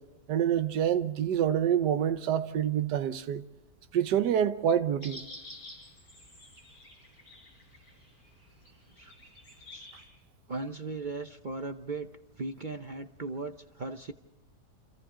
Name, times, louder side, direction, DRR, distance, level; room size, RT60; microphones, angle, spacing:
voice 1, 0.3-3.4 3.9-5.2, right 9 dB, 80° right, 1.5 m, -27 dB
sound 1, 5.0-10.1, left 1 dB, 60° left, 6.4 m, -50 dB
voice 2, 10.5-12.1 12.4-14.1, right 3 dB, 40° right, 0.7 m, -37 dB
29.5 x 26.5 x 3.8 m
omnidirectional pair, 1.8 m